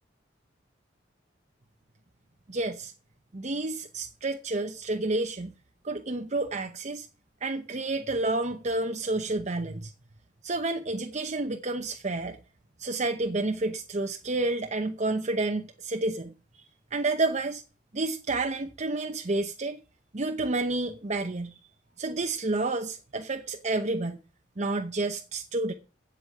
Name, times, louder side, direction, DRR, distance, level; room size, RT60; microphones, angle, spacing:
voice 1, 2.5-2.9 3.3-5.5 5.8-7.1 7.4-9.9 10.4-12.4 12.8-16.6 16.9-17.6 17.9-19.8 20.1-21.5 22.0-24.2 24.6-25.7, right 2 dB, 40° right, 0.9 m, -30 dB
8.1 x 8.1 x 8.5 m
head